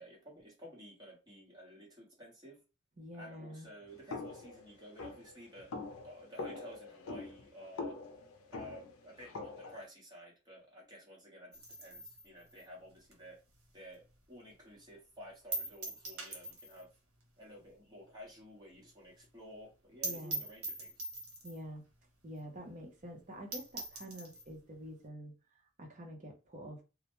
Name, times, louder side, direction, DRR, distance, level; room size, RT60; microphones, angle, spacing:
voice 1, 0.0-2.6 3.2-5.7 6.0-8.0 8.5-13.4 13.7-16.9 17.4-21.1, equal, 20° right, 1.1 m, -53 dB
voice 2, 3.0-3.7 20.0-20.4 21.4-21.8 22.2-25.3 25.8-26.8, equal, 35° right, 0.7 m, -47 dB
sound 1, 4.1-9.9, left 3 dB, 80° left, 0.5 m, -44 dB
sound 2, 11.5-14.2 14.5-14.6 14.9-15.0 15.5-16.9 17.2-17.3 17.6-17.7 18.1-18.2 18.4-18.5 18.8-18.9 19.2-19.3 19.7-19.8 20.0-21.7 22.4-22.5 22.8-22.9 23.2-23.3 23.5-24.5, right 2 dB, 80° right, 0.9 m, -42 dB
2.3 x 2.1 x 3.0 m
head